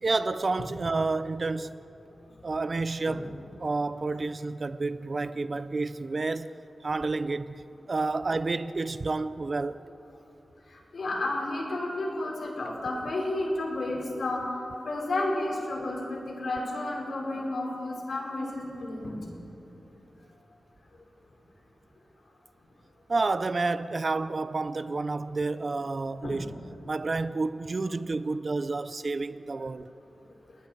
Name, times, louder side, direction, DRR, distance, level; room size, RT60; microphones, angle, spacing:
voice 1, 0.0-1.7 2.4-3.3 3.6-6.5 6.8-7.6 7.9-9.8 23.1-26.5 26.9-29.9, right 3 dB, 40° right, 0.5 m, -30 dB
voice 2, 10.9-19.3 26.2-26.4, left 2 dB, 65° left, 5.1 m, -31 dB
30.0 x 20.0 x 4.6 m
wide cardioid pair, 135°, 0 cm